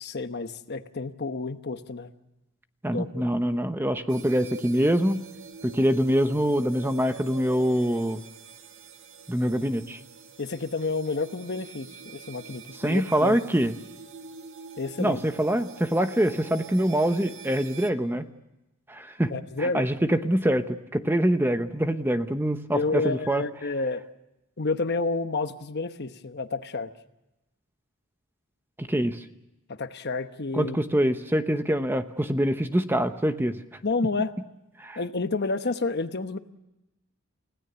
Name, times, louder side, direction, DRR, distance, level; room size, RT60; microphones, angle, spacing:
voice 1, 0.0-2.1 2.9-3.2 10.4-13.4 14.8-15.2 19.3-19.9 22.7-24.0 24.6-26.9 29.8-30.8 33.8-34.3 35.0-36.4, left 3 dB, 50° left, 9 dB, 1.1 m, -30 dB
voice 2, 2.8-5.2 5.6-8.2 9.3-10.0 12.7-13.7 15.0-18.3 18.9-19.3 19.6-23.4 28.8-29.2 30.5-33.6 34.8-35.0, equal, 10° right, 9 dB, 0.9 m, -25 dB
sound 1, 4.1-17.9, right 5 dB, 60° right, 1.6 m, -46 dB
29.5 x 17.0 x 6.9 m, 0.95 s
head